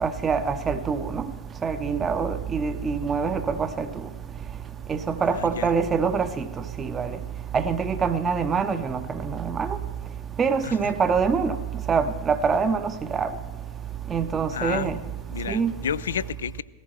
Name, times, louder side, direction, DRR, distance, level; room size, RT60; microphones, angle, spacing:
voice 1, 0.0-1.2 1.6-3.9 4.9-6.5 6.8-7.1 7.5-9.8 10.4-11.6 11.9-13.3 14.1-15.0 15.5-15.7, right 5 dB, 20° right, 9 dB, 0.7 m, -25 dB
voice 2, 5.3-5.7 10.6-10.8 14.5-15.0 15.3-16.6, left 8 dB, 65° left, 19 dB, 0.4 m, -31 dB
18.0 x 14.0 x 4.6 m, 1.5 s
figure-of-eight pair, 90°, 0 cm